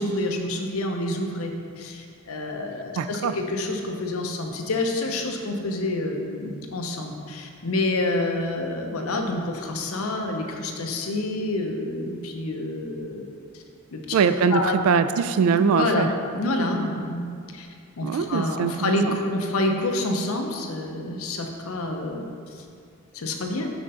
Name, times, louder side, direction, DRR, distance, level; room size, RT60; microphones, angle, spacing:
voice 1, 0.0-13.2 13.5-13.6 13.9-14.0 14.5-14.8 15.5-16.1 16.3-17.7 18.0-22.3 23.1-23.7, left 2 dB, 75° left, 3 dB, 0.7 m, -28 dB
voice 2, 3.0-3.3 14.1-16.1 18.0-19.2, right 6 dB, 75° right, 11 dB, 0.3 m, -22 dB
6.1 x 3.7 x 5.5 m, 2.3 s
head